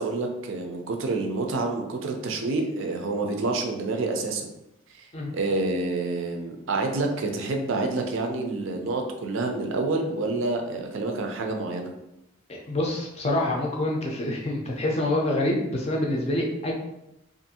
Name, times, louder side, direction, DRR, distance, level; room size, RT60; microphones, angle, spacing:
voice 1, 0.0-4.5 5.0-5.1 5.3-11.9, right 3 dB, 75° right, 3 dB, 0.4 m, -28 dB
voice 2, 12.7-16.7, left 1 dB, 30° left, -1 dB, 0.4 m, -26 dB
2.5 x 2.5 x 2.7 m, 0.87 s
head